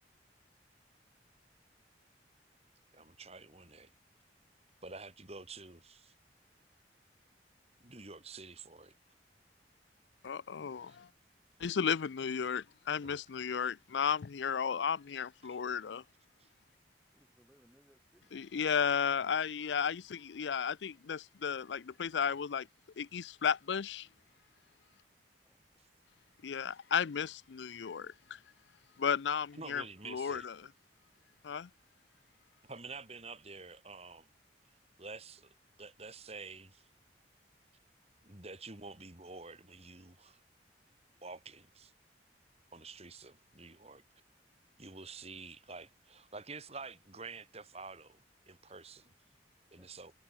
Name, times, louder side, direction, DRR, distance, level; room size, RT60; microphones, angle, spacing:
voice 1, 2.9-3.9 4.8-6.1 7.8-9.0 10.9-11.0 13.0-13.2 15.4-15.6 16.4-16.5 29.5-30.5 32.6-34.3 35.0-35.5 35.8-36.9 38.2-40.4 41.2-41.9 42.7-44.0 44.8-48.2 48.5-49.1 49.7-50.1, right 3 dB, 35° right, 3.8 m, -49 dB
voice 2, 10.2-11.1 11.6-16.0 18.3-22.7 23.0-24.1 26.4-28.4 29.0-30.5 31.4-31.7, left 7 dB, 80° left, 0.5 m, -34 dB
voice 3, 17.1-18.3 25.4-25.9 49.6-49.9, equal, 5° right, 7.2 m, -68 dB
head